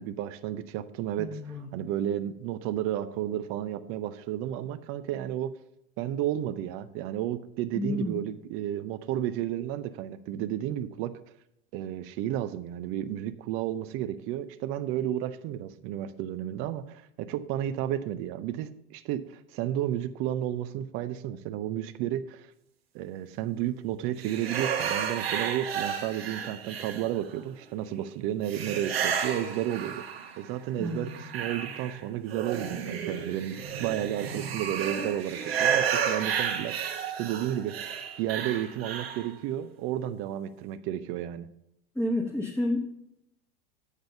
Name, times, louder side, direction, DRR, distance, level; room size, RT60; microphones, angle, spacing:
voice 1, 0.0-1.4 1.7-5.5 6.0-11.1 11.7-22.5 22.9-30.0 30.4-37.7 38.2-41.5, right 12 dB, 45° right, 11 dB, 0.7 m, -32 dB
voice 2, 1.2-1.7 7.7-8.1 30.8-31.2 41.9-42.8, left 1 dB, 5° left, -2 dB, 1.2 m, -30 dB
sound 1, 24.2-27.4 28.5-30.5 30.8-39.3, right 7 dB, 75° right, 1.4 m, -32 dB
8.3 x 5.1 x 6.9 m, 0.78 s
hypercardioid pair, 85°, 30 cm